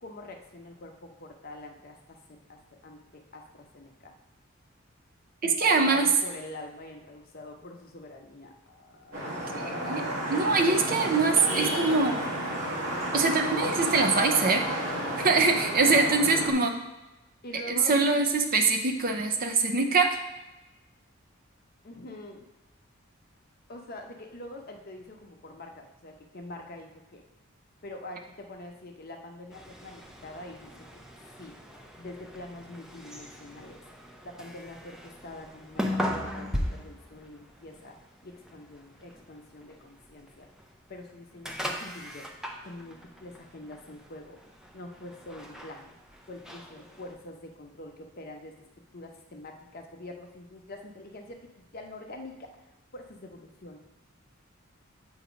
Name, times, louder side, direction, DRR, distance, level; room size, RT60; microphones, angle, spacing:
voice 1, 0.0-4.1 5.4-10.1 15.3-16.2 17.4-18.0 21.8-22.5 23.7-27.2 27.8-31.0 31.4-31.6 32.0-33.8 34.2-38.0 38.2-40.5 40.9-42.3 42.6-44.4 44.7-45.9 46.3-48.5 48.9-52.5 52.9-53.8, left 1 dB, 45° left, 2 dB, 0.8 m, -44 dB
voice 2, 5.4-6.1 9.8-10.0 10.3-12.3 13.1-14.7 15.2-16.7 17.7-20.2, right 4 dB, 45° right, 4 dB, 0.6 m, -23 dB
Vehicle horn car horn honking / Traffic noise roadway noise, 9.1-16.5, right 1 dB, 90° right, 1.5 m, -31 dB
sound 1, 29.5-47.2, equal, 5° right, 0.5 m, -39 dB
8.0 x 2.8 x 5.1 m, 1.0 s
head